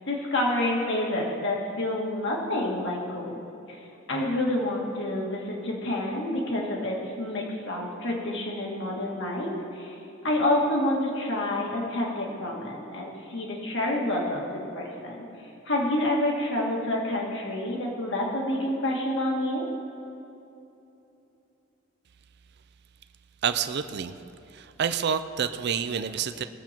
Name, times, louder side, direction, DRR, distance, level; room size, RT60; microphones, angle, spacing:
voice 1, 0.1-3.4 3.7-3.8 4.1-9.9 10.2-15.2 15.7-19.7, left 1 dB, 65° left, -2 dB, 2.2 m, -28 dB
voice 2, 23.4-24.2 24.5-26.4, right 7 dB, 55° right, 10 dB, 0.5 m, -28 dB
19.5 x 7.3 x 4.5 m, 2.9 s
head